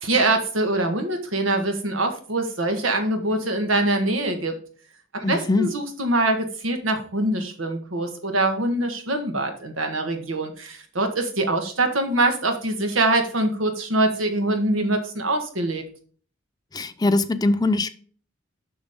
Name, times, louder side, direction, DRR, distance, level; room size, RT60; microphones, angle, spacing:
voice 1, 0.0-4.6 5.1-15.8, right 2 dB, 85° right, 1.5 m, -24 dB
voice 2, 5.2-5.7 16.7-17.9, left 2 dB, 20° left, 0.5 m, -21 dB
7.2 x 6.2 x 3.7 m
head